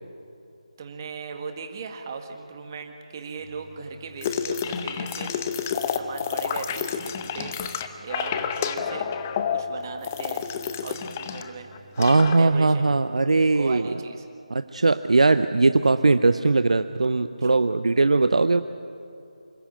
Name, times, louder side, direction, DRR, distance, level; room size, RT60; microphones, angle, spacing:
voice 1, 0.8-5.5 5.9-9.1 9.5-10.5 10.8-11.7 12.2-12.9 13.5-14.3 17.4-17.5, right 5 dB, 30° right, 5 dB, 1.8 m, -38 dB
Idling, 3.4-13.0, right 2 dB, 5° right, 2.1 m, -53 dB
sound 1, 4.2-11.5 11.7-12.4, left 7 dB, 20° left, 0.8 m, -29 dB
voice 2, 12.0-13.9 14.5-18.6, right 3 dB, 60° right, 11 dB, 0.6 m, -20 dB
27.5 x 13.0 x 9.0 m, 2.7 s
figure-of-eight pair, 160°, 4 cm